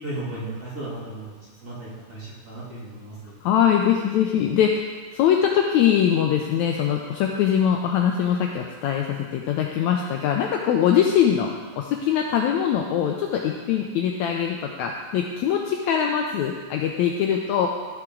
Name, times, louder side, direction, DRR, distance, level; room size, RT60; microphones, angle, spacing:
voice 1, 0.0-1.4 1.6-3.4, right 2 dB, 30° right, -9 dB, 2.8 m, -35 dB
voice 2, 3.4-4.9 5.1-11.5 11.8-17.7, left 9 dB, 85° left, 1 dB, 1.6 m, -22 dB
14.5 x 5.9 x 3.7 m, 1.4 s
omnidirectional pair, 3.9 m